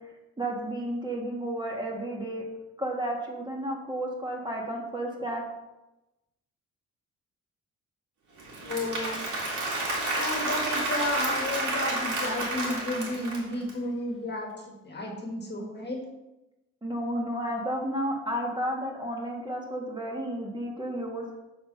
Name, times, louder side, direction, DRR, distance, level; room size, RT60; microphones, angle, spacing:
voice 1, 0.4-2.4 2.8-5.4 16.8-21.2, right 1 dB, 15° right, -1 dB, 1.6 m, -32 dB
Applause / Crowd, 8.4-13.7, right 2 dB, 70° right, 2.4 m, -30 dB
voice 2, 8.6-9.2 10.1-16.0, left 1 dB, 35° left, 1 dB, 1.6 m, -32 dB
6.9 x 4.2 x 5.4 m, 0.99 s
cardioid pair, 90°, 30 cm